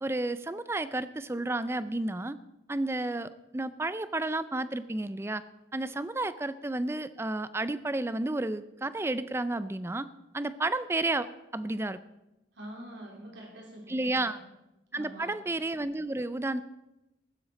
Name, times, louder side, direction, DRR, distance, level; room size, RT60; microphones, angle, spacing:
voice 1, 0.0-2.4 2.7-5.4 5.7-10.1 10.3-11.3 11.5-12.0 13.9-14.4 14.9-16.6, right 2 dB, 15° right, 14 dB, 0.4 m, -31 dB
voice 2, 12.5-14.4 14.9-15.3, right 1 dB, 75° right, -2 dB, 3.1 m, -45 dB
15.5 x 12.0 x 4.1 m, 0.95 s
head